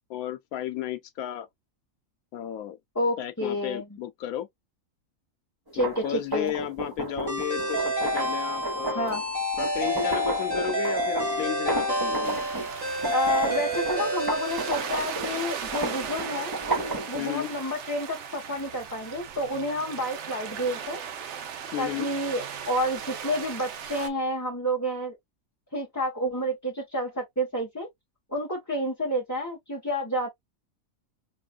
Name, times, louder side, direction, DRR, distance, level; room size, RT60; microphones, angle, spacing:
voice 1, 0.1-1.5 2.3-2.8 3.2-4.5 5.7-9.1 9.6-12.4 17.1-17.5 21.7-22.1, left 11 dB, 85° left, 1.1 m, -33 dB
voice 2, 2.9-3.8 5.7-6.5 8.9-9.2 13.1-16.5 17.1-21.0 21.8-25.2 25.7-27.9 28.3-30.3, equal, 15° left, 0.9 m, -29 dB
sound 1, 5.7-12.7 13.0-17.2, right 2 dB, 15° right, 1.1 m, -33 dB
sound 2, 7.3-15.4, equal, 85° right, 3.1 m, -29 dB
sound 3, 12.2-24.1, right 7 dB, 60° right, 1.0 m, -37 dB
6.0 x 2.4 x 2.2 m
omnidirectional pair, 1.5 m